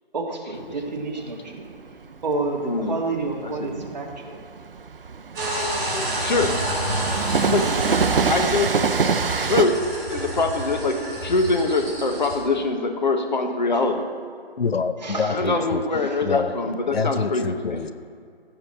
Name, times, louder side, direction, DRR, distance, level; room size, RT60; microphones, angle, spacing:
voice 1, 0.1-1.6 2.2-4.4 15.0-15.6 16.0-16.2, right 3 dB, 45° right, 1 dB, 1.7 m, -29 dB
Train, 0.6-9.7, right 5 dB, 60° right, 0.7 m, -26 dB
voice 2, 2.6-3.0 3.4-3.5 6.2-6.5 7.5-7.6 8.3-8.7 9.4-9.7 10.1-11.0 11.2-14.0 15.3-17.8, left 3 dB, 45° left, 5 dB, 1.3 m, -23 dB
sound 1, 5.3-12.4, right 1 dB, 20° right, 3.2 m, -29 dB
voice 3, 14.6-15.9 16.2-16.6 16.9-17.9, left 5 dB, 70° left, 11 dB, 0.8 m, -26 dB
15.5 x 7.7 x 4.3 m, 2.2 s
figure-of-eight pair, 165°, 31 cm